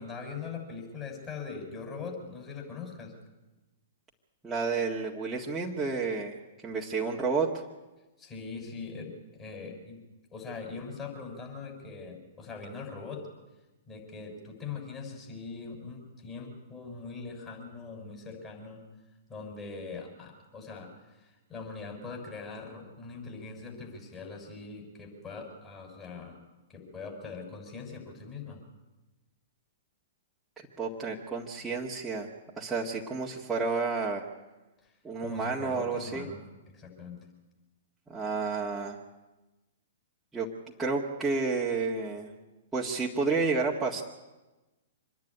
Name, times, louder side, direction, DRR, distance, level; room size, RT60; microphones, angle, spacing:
voice 1, 0.0-3.1 8.2-10.0 10.3-13.2 13.9-18.8 19.3-26.4 26.7-28.6 34.8-36.4 36.7-37.2, left 4 dB, 25° left, 1 dB, 6.8 m, -41 dB
voice 2, 4.4-6.4 6.6-7.5 30.8-32.3 32.6-34.2 35.0-36.3 38.1-39.0 40.3-40.5 40.8-42.3 42.7-44.0, right 4 dB, 10° right, -5 dB, 1.9 m, -30 dB
25.5 x 10.5 x 9.9 m, 1.1 s
hypercardioid pair, 115°, 0 cm